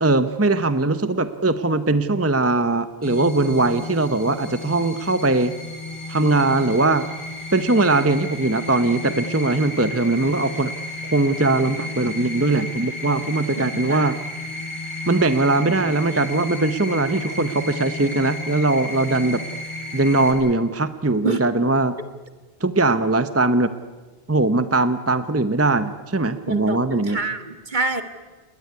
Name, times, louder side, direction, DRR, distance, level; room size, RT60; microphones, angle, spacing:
voice 1, 0.0-5.5 6.1-7.1 7.5-10.7 11.0-14.2 15.1-19.4 19.9-21.9 22.6-23.7 24.3-27.2, right 2 dB, 15° right, 11 dB, 0.8 m, -20 dB
sound 1, 3.0-20.3, left 2 dB, 30° left, 8.0 m, -33 dB
voice 2, 13.6-14.1 21.2-21.4 26.5-28.0, right 3 dB, 50° right, 9 dB, 1.8 m, -27 dB
29.5 x 19.0 x 9.5 m, 1.3 s
omnidirectional pair, 1.1 m